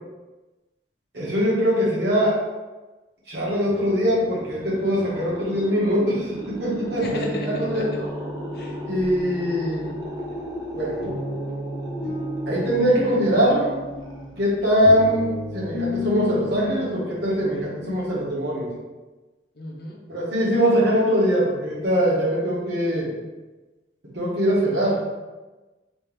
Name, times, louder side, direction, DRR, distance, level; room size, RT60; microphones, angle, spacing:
voice 1, 1.1-2.4 3.3-8.1 8.8-9.9 10.7-11.0 12.5-13.7 14.4-18.7 20.1-23.1 24.1-25.0, equal, 60° right, -8 dB, 1.3 m, -22 dB
sound 1, 3.5-14.6, equal, 20° right, 0.5 m, -37 dB
sound 2, 5.8-18.1, left 2 dB, 30° left, 0.9 m, -34 dB
voice 2, 7.0-8.0 8.5-8.8 19.5-20.1, left 1 dB, 55° left, 1 dB, 0.6 m, -35 dB
3.4 x 2.8 x 3.4 m, 1.2 s
head